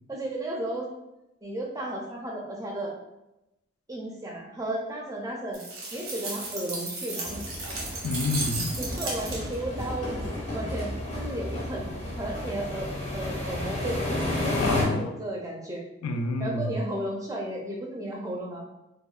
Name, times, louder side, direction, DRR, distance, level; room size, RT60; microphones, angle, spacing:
voice 1, 0.1-0.9 1.4-2.9 3.9-5.6 5.9-7.4 8.8-10.2 10.5-11.9 12.2-12.9 13.1-15.8 16.4-18.6, right 1 dB, 15° right, -2 dB, 0.3 m, -34 dB
sound 1, 5.5-9.7, right 2 dB, 75° right, 0.7 m, -35 dB
sound 2, 7.3-14.8, left 1 dB, 30° left, 0.6 m, -32 dB
voice 2, 8.0-8.8 14.6-15.1 16.0-16.7, left 2 dB, 90° left, 6 dB, 0.3 m, -28 dB
2.8 x 2.1 x 2.3 m, 0.92 s
head